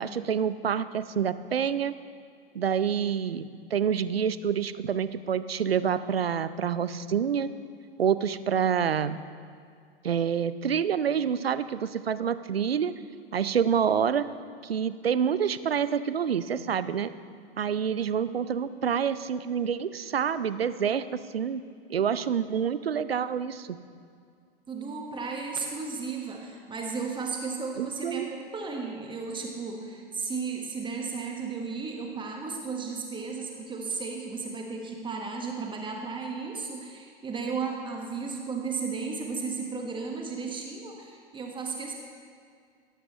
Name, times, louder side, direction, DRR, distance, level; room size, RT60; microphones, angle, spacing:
voice 1, 0.0-2.0 2.5-7.5 8.0-9.2 10.0-12.9 13.3-14.3 14.6-17.1 17.6-21.6 21.9-23.8 27.8-28.3, right 7 dB, 80° right, 14 dB, 0.6 m, -27 dB
voice 2, 24.7-41.9, right 4 dB, 15° right, 1 dB, 1.4 m, -34 dB
17.0 x 13.5 x 3.1 m, 2.2 s
figure-of-eight pair, 95°, 30 cm